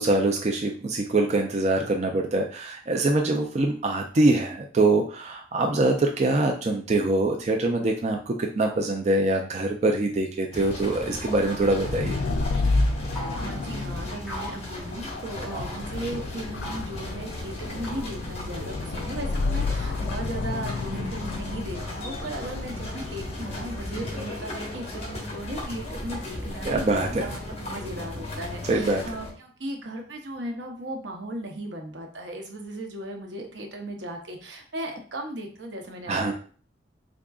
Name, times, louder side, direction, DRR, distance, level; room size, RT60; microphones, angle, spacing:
voice 1, 0.0-12.2 26.6-27.2 28.7-29.0 36.1-36.3, right 2 dB, 40° right, 2 dB, 0.4 m, -24 dB
sound 1, 10.5-29.3, left 1 dB, 35° left, 1.1 m, -36 dB
sound 2, 11.5-24.1, left 3 dB, 70° left, 0.4 m, -31 dB
sound 3, 13.1-13.5 14.3-14.6 15.5-15.8 16.6-16.9 17.8-18.2 19.6-20.1 20.9-21.6, equal, 5° right, 1.1 m, -40 dB
voice 2, 13.1-36.3, right 1 dB, 80° right, 3 dB, 0.8 m, -36 dB
3.7 x 3.6 x 2.3 m, 0.42 s
head